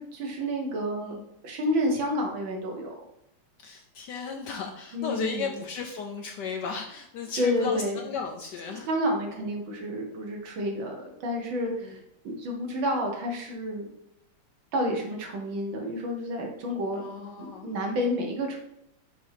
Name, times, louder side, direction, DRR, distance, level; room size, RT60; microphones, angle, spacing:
voice 1, 0.0-1.2 1.4-2.9 4.9-5.6 7.4-8.0 8.7-12.0 12.2-13.9 14.7-17.0 17.4-18.6, equal, 70° right, 1 dB, 1.9 m, -30 dB
voice 2, 3.6-8.9 11.7-12.0 16.9-17.7, left 5 dB, 70° left, 3 dB, 1.0 m, -35 dB
6.2 x 2.8 x 5.6 m, 0.78 s
omnidirectional pair, 2.3 m